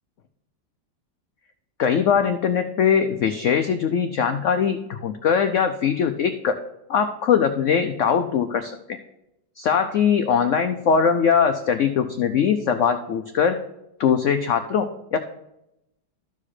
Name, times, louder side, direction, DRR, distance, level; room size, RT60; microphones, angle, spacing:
voice 1, 1.8-6.6 6.9-8.8 9.6-13.6 14.0-15.2, left 7 dB, 85° left, 8 dB, 0.6 m, -21 dB
13.5 x 4.9 x 4.3 m, 0.86 s
omnidirectional pair, 1.9 m